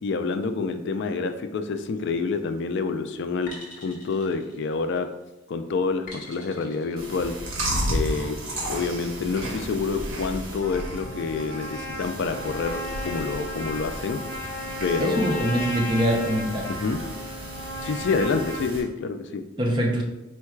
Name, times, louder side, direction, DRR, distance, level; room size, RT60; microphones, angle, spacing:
voice 1, 0.0-3.6 3.8-5.1 5.5-7.3 7.9-8.4 8.7-14.2 14.8-15.5 16.7-17.0 17.8-19.4, left 4 dB, 55° left, 8 dB, 0.3 m, -27 dB
sound 1, 1.9-2.4 3.5-5.1 6.1-7.0, left 1 dB, 35° left, 0.8 m, -45 dB
Chewing mastication, 7.0-18.8, right 1 dB, 65° right, 1.1 m, -34 dB
Trumpet, 10.6-18.7, left 1 dB, 10° left, 1.0 m, -35 dB
voice 2, 15.0-16.7 19.6-20.0, right 1 dB, 20° right, 0 dB, 0.5 m, -23 dB
4.5 x 2.2 x 4.5 m, 0.97 s
head